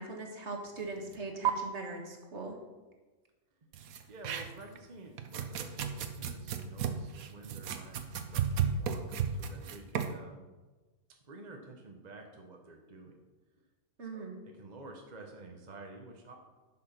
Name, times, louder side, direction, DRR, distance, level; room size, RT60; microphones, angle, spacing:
voice 1, 0.0-2.6 14.0-14.4, right 3 dB, 50° right, 2 dB, 1.7 m, -40 dB
sound 1, 1.1-1.2 1.5-1.6 3.7-4.8 5.2-10.2, right 8 dB, 70° right, 1.2 m, -34 dB
voice 2, 4.1-10.4 11.3-13.2 14.1-14.2 14.6-16.3, right 2 dB, 35° right, 2 dB, 1.0 m, -50 dB
10.5 x 6.0 x 5.9 m, 1.2 s
omnidirectional pair, 1.6 m